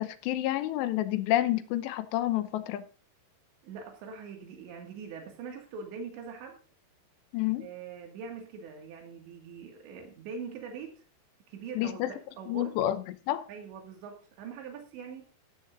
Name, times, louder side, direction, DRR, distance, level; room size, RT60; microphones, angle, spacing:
voice 1, 0.0-2.8 7.3-7.7 11.8-12.1 12.5-13.0 13.3-13.5, left 14 dB, 85° left, 3.0 m, -29 dB
voice 2, 3.6-6.6 7.6-11.0 11.5-12.8 13.5-15.3, right 5 dB, 90° right, 4.3 m, -43 dB
14.5 x 13.5 x 2.6 m
omnidirectional pair, 5.0 m